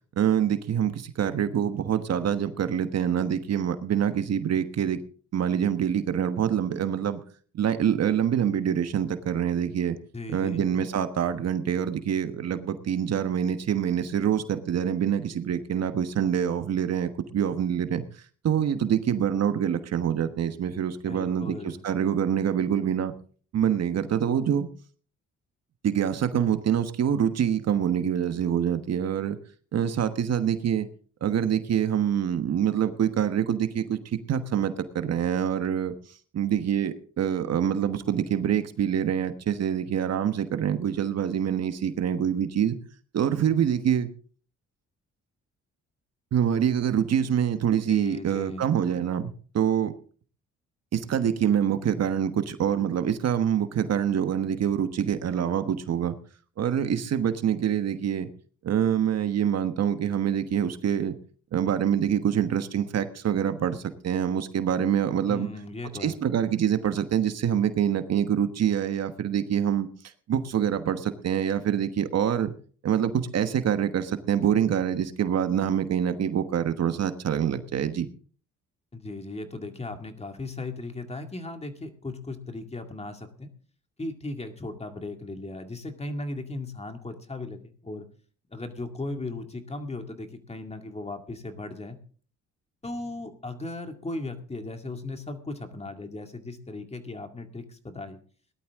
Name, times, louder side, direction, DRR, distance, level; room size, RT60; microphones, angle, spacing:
voice 1, 0.1-5.0 5.3-7.2 7.5-10.0 10.3-18.1 18.4-23.1 23.5-24.7 25.8-29.4 29.7-30.9 31.2-35.9 36.3-42.8 43.1-44.1 46.3-49.9 50.9-56.2 56.6-58.3 58.6-61.2 61.5-65.5 66.0-69.9 70.3-72.5 72.8-78.1, right 9 dB, 55° right, 10 dB, 1.3 m, -25 dB
voice 2, 10.1-10.7 21.1-21.8 47.9-48.6 65.3-66.2 78.9-83.5 84.0-88.1 88.5-92.0 92.8-98.2, left 2 dB, 20° left, 6 dB, 2.2 m, -37 dB
18.0 x 12.0 x 3.7 m, 0.43 s
cardioid pair, 90°, 30 cm